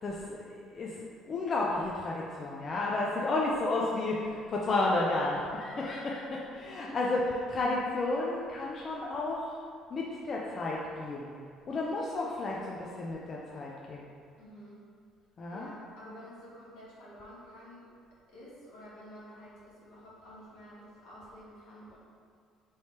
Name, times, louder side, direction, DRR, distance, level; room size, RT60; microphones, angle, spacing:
voice 1, 0.0-9.6 9.9-11.3 11.7-14.1 15.4-15.7, left 2 dB, 40° left, -3 dB, 0.4 m, -32 dB
voice 2, 6.7-7.1 14.4-14.8 15.5-17.9 18.3-22.0, equal, 80° left, -8 dB, 1.3 m, -50 dB
3.1 x 2.9 x 4.4 m, 2.2 s
supercardioid pair, 85°, 0 cm